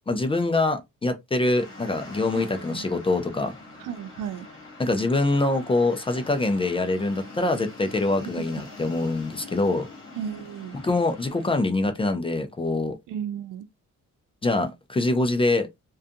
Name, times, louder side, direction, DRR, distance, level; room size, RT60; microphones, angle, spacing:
voice 1, 0.1-3.6 4.8-9.9 10.7-12.9 14.4-15.7, left 2 dB, 20° left, 0.3 m, -24 dB
sound 1, 1.5-11.7, left 3 dB, 40° left, 1.1 m, -44 dB
voice 2, 2.3-2.8 3.8-4.5 8.3-8.5 10.2-10.8 13.1-13.7, right 8 dB, 85° right, 0.5 m, -34 dB
2.5 x 2.3 x 2.5 m
wide cardioid pair, 130°, 31 cm